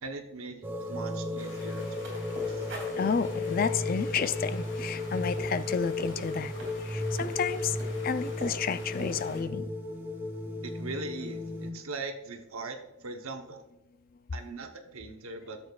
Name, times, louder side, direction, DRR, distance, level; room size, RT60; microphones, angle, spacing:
voice 1, 0.0-2.7 10.6-13.6 14.3-15.6, right 3 dB, 90° right, 5 dB, 0.9 m, -41 dB
sound 1, 0.6-11.7, left 2 dB, 10° right, 0.6 m, -34 dB
sound 2, 1.4-9.4, left 2 dB, 65° left, 2.1 m, -48 dB
sound 3, 1.9-9.5, right 1 dB, 60° right, 2.7 m, -45 dB
voice 2, 3.0-6.5 6.9-7.7 8.0-9.7, left 6 dB, 45° left, 12 dB, 0.4 m, -31 dB
13.0 x 7.1 x 2.4 m, 0.93 s
head